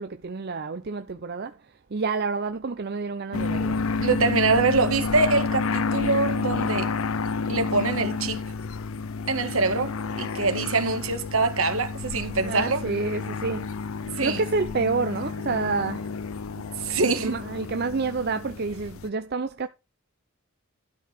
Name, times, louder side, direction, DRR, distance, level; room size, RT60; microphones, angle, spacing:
voice 1, 0.0-3.9 12.3-13.7 14.2-16.2 16.5-16.6 17.0-19.7, right 4 dB, 50° right, 0.6 m, -29 dB
sound 1, 3.3-19.1, left 4 dB, 70° left, 0.6 m, -30 dB
voice 2, 3.9-6.9 7.5-8.4 9.3-12.8 14.1-14.4 16.8-17.3, right 3 dB, 70° right, 1.8 m, -24 dB
12.5 x 4.8 x 5.1 m
head